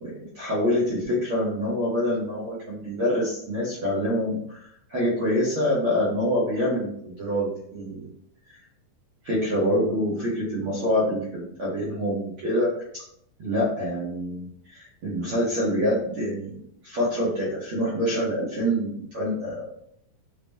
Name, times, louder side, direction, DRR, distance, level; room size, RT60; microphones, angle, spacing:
voice 1, 0.0-8.1 8.5-8.6 9.2-12.7 13.4-14.5 14.7-19.6, equal, 85° right, -9 dB, 1.1 m, -26 dB
5.7 x 2.0 x 3.3 m, 0.71 s
omnidirectional pair, 3.9 m